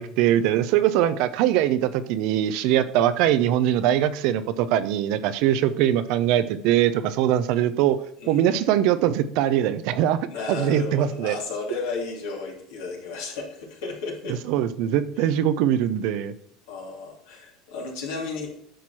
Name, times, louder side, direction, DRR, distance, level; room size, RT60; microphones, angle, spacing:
voice 1, 0.0-8.0 8.3-10.2 10.5-11.4 14.5-16.3, right 11 dB, 65° right, 12 dB, 0.7 m, -22 dB
voice 2, 8.2-8.5 10.3-14.4 15.2-15.3 16.7-18.5, left 4 dB, 80° left, -1 dB, 3.1 m, -33 dB
10.0 x 6.0 x 4.4 m, 0.69 s
hypercardioid pair, 90°, 0 cm